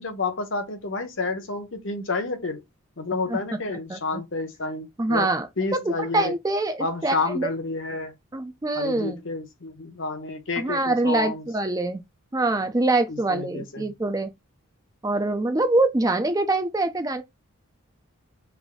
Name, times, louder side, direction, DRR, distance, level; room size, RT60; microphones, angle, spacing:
voice 1, 0.0-2.6 3.0-6.3 6.8-8.1 8.7-11.4 13.3-13.9, left 3 dB, 60° left, 0.8 m, -30 dB
voice 2, 5.0-5.5 5.7-7.5 8.3-9.2 10.6-12.0 12.3-14.3 15.0-17.2, right 2 dB, 15° right, 0.4 m, -24 dB
3.4 x 2.6 x 3.6 m
head